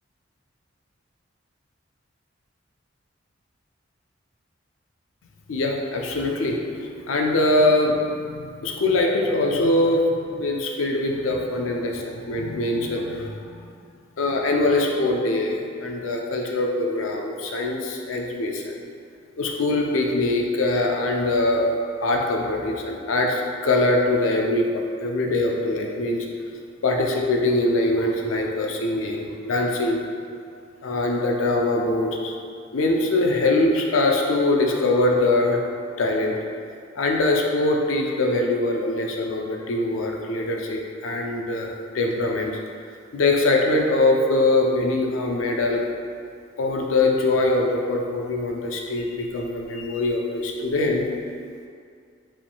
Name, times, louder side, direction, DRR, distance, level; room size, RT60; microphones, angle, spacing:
voice 1, 5.5-13.7 14.2-18.7 19.4-21.7 22.0-26.3 26.8-30.0 30.8-32.3 32.7-35.6 36.0-36.4 37.0-42.6 43.1-45.8 46.6-51.1, left 2 dB, 90° left, 1 dB, 0.5 m, -23 dB
5.0 x 3.6 x 2.3 m, 2.3 s
head